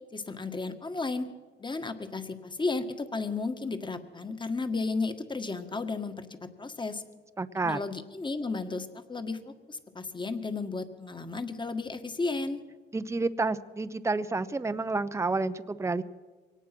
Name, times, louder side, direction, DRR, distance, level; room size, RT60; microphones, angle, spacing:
voice 1, 0.1-1.3 1.6-7.0 7.6-12.6, left 3 dB, 25° left, 9 dB, 1.8 m, -33 dB
voice 2, 7.4-7.8 12.9-16.0, right 3 dB, 15° right, 12 dB, 0.8 m, -29 dB
23.5 x 18.5 x 6.1 m, 1.3 s
cardioid pair, 90°, 20 cm